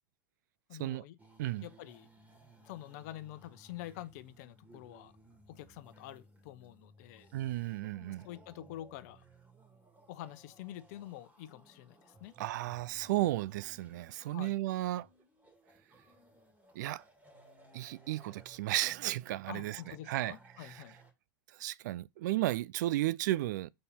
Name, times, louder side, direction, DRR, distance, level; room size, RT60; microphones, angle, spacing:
voice 1, 0.7-1.1 1.6-2.1 2.6-5.1 5.5-7.3 8.0-9.2 10.1-12.3 14.2-14.5 19.5-21.0, left 14 dB, 60° left, 0.9 m, -47 dB
sound 1, 1.2-21.1, right 2 dB, 15° right, 2.6 m, -60 dB
voice 2, 7.3-8.3 12.4-15.1 16.7-17.0 17.7-19.8 20.1-20.3 20.6-20.7 21.6-23.7, right 16 dB, 70° right, 0.4 m, -34 dB
5.5 x 4.2 x 5.6 m
hypercardioid pair, 110°, 10 cm